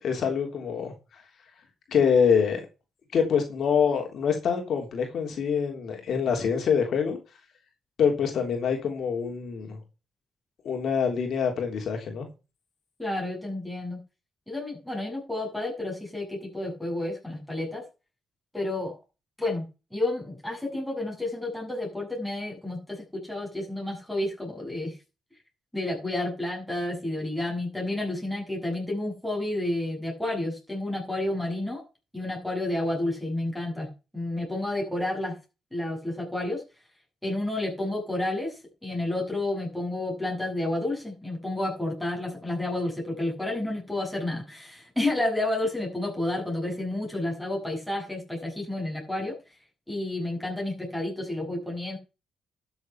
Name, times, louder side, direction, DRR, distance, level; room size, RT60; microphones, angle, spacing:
voice 1, 0.0-1.2 1.9-2.6 3.1-7.2 8.0-9.8 10.6-12.3, left 6 dB, 55° left, 3.3 m, -25 dB
voice 2, 13.0-14.0 14.5-17.8 18.5-18.9 19.4-19.7 19.9-24.9 25.7-31.8 32.1-33.9 34.1-35.4 35.7-36.6 37.2-49.4 49.9-52.0, left 1 dB, ahead, 7.6 m, -30 dB
12.5 x 7.3 x 5.8 m
cardioid pair, 130°, 0 cm